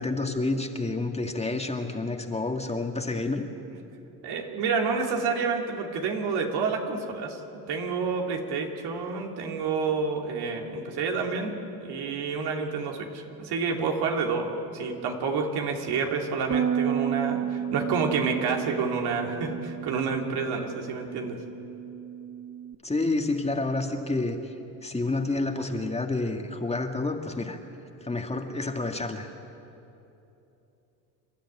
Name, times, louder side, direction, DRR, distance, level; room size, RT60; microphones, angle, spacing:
voice 1, 0.0-3.4 22.8-24.4 24.8-27.6 28.0-29.3, left 2 dB, 15° left, 4 dB, 1.9 m, -29 dB
voice 2, 4.2-7.4 7.7-11.5 11.8-21.4, right 5 dB, 70° right, 2 dB, 2.9 m, -29 dB
Bass guitar, 16.5-22.8, right 9 dB, 30° right, 0.5 m, -32 dB
28.0 x 11.5 x 9.7 m, 2.9 s
supercardioid pair, 90°, 41 cm